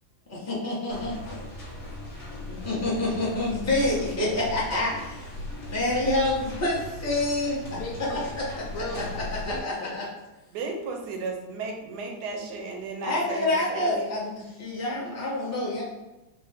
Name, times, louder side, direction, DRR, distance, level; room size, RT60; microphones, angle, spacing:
voice 1, 0.3-1.2 2.4-5.3 5.7-7.8 8.9-10.0 13.0-15.8, left 2 dB, 20° left, -8 dB, 0.4 m, -27 dB
sound 1, 0.9-9.6, left 1 dB, 40° left, 1.4 m, -38 dB
voice 2, 7.7-9.9, left 1 dB, 70° left, 0 dB, 1.0 m, -38 dB
voice 3, 10.5-14.1, right 3 dB, 70° right, 2 dB, 1.0 m, -34 dB
4.0 x 2.2 x 3.4 m, 1.1 s
omnidirectional pair, 2.1 m